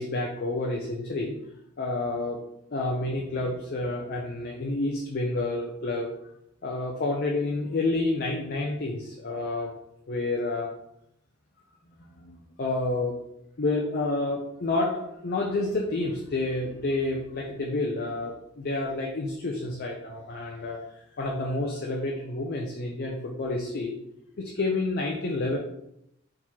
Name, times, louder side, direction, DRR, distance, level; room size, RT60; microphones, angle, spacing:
voice 1, 0.0-1.3 1.8-2.4 2.7-6.1 6.6-9.7 10.1-10.7 12.2-13.1 13.6-20.8 21.2-23.9 24.4-25.6, left 2 dB, 50° left, 0 dB, 0.5 m, -29 dB
4.5 x 3.6 x 2.9 m, 0.79 s
head